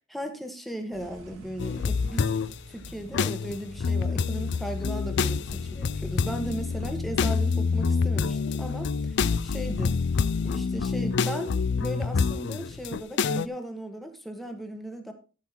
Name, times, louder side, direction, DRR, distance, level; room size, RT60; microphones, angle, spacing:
voice 1, 0.1-9.2 9.4-10.0 10.4-15.1, right 1 dB, ahead, 5 dB, 1.5 m, -37 dB
sound 1, 0.9-7.4, equal, 70° right, 1.9 m, -48 dB
sound 2, 1.6-2.5 2.8-13.5, left 5 dB, 55° left, 0.4 m, -27 dB
14.0 x 5.8 x 4.5 m, 0.35 s
head